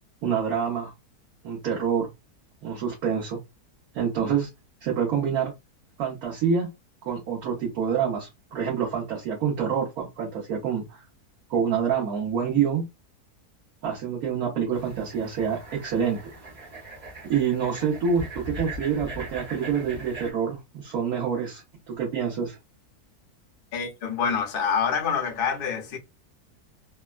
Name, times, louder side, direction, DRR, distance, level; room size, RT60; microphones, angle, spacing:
voice 1, 0.2-0.9 1.4-2.1 2.6-3.4 3.9-4.5 4.8-5.5 6.0-6.7 7.0-11.0 11.5-12.9 13.8-16.2 17.3-21.6 21.9-22.6, right 7 dB, 70° right, 1.4 m, -27 dB
sound 1, 14.7-20.3, right 1 dB, 45° right, 1.2 m, -40 dB
voice 2, 23.7-26.0, left 6 dB, 50° left, 0.7 m, -26 dB
3.4 x 2.1 x 2.3 m
omnidirectional pair, 1.7 m